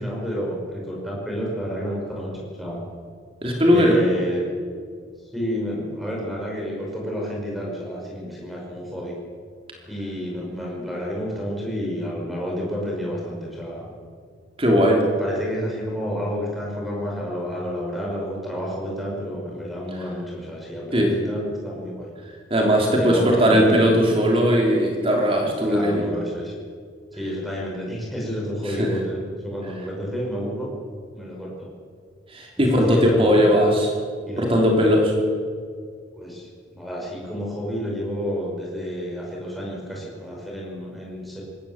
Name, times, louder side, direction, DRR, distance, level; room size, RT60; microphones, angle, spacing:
voice 1, 0.0-2.8 3.7-4.5 5.3-9.1 9.9-13.9 15.2-22.1 22.9-23.9 24.4-24.5 25.6-26.5 27.1-30.7 31.1-31.7 32.6-33.5 34.3-34.6 36.1-41.4, equal, ahead, -3 dB, 5.3 m, -30 dB
voice 2, 3.4-4.0 14.6-15.0 20.9-21.2 22.5-26.0 28.8-28.9 32.3-33.9 34.4-35.1, equal, 30° right, 0 dB, 3.3 m, -18 dB
21.0 x 17.5 x 7.3 m, 2.1 s
head